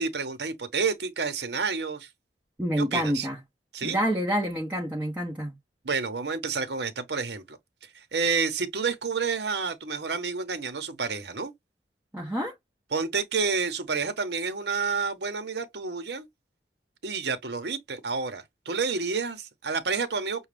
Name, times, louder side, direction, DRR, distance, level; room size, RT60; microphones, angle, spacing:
voice 1, 0.0-2.1 2.8-3.3 3.7-4.0 5.8-7.6 7.9-11.5 12.9-16.3 17.0-20.4, right 4 dB, 70° right, 1.0 m, -29 dB
voice 2, 2.6-3.4 3.8-5.5 12.1-12.5, equal, 10° right, 0.8 m, -28 dB
6.3 x 2.3 x 3.3 m
head